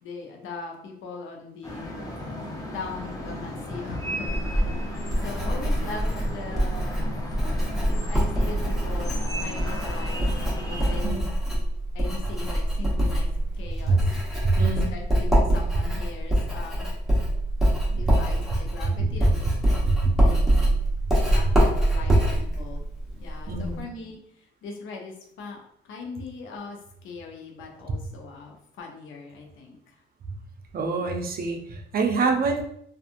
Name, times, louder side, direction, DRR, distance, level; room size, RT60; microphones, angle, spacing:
voice 1, 0.0-2.0 2.7-7.0 7.9-11.3 11.9-14.0 14.9-16.9 17.9-19.8 20.2-20.4 21.3-22.8 23.2-26.8 27.0-30.0, left 4 dB, 80° left, 1 dB, 0.7 m, -40 dB
sound 1, 1.6-11.0, left 1 dB, 20° left, 0.7 m, -35 dB
Writing, 4.3-23.8, right 1 dB, ahead, 1.1 m, -24 dB
voice 2, 14.4-14.9 19.0-19.1 20.0-20.1 23.5-23.8 30.7-32.6, right 4 dB, 50° right, 4 dB, 0.5 m, -25 dB
2.7 x 2.4 x 2.5 m, 0.72 s
cardioid pair, 90°, 20 cm